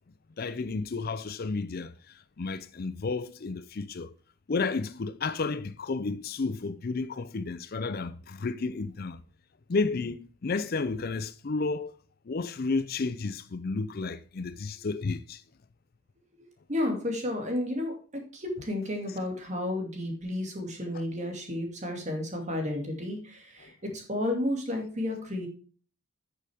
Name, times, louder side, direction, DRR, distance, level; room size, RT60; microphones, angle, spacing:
voice 1, 0.4-4.1 4.5-9.2 9.7-11.9 12.3-15.4 23.6-23.7, left 4 dB, 45° left, 0.5 m, -32 dB
voice 2, 16.4-25.5, left 1 dB, 30° right, 2.4 m, -32 dB
11.0 x 6.8 x 3.5 m
head